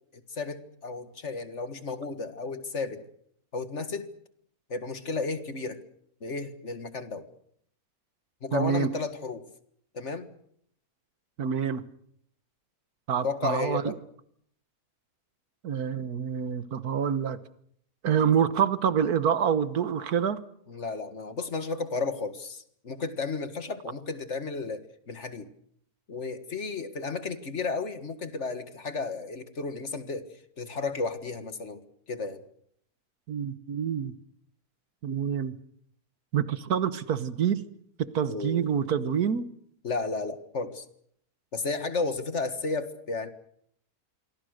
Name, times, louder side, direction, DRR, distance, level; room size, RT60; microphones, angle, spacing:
voice 1, 0.1-3.0 3.5-4.1 4.7-5.8 6.2-7.3 8.4-9.5 9.9-10.3 13.2-14.0 20.7-25.5 26.1-31.8 32.1-32.4 38.3-38.7 39.0-39.2 39.8-40.9 41.5-43.3, left 4 dB, 50° left, 10 dB, 2.0 m, -33 dB
voice 2, 8.5-8.9 11.4-11.8 13.1-13.9 15.6-17.4 18.0-20.4 33.3-34.1 35.0-35.6 36.3-37.6 38.0-39.5, right 8 dB, 75° right, 14 dB, 1.7 m, -27 dB
26.5 x 23.5 x 6.6 m, 0.69 s
omnidirectional pair, 1.6 m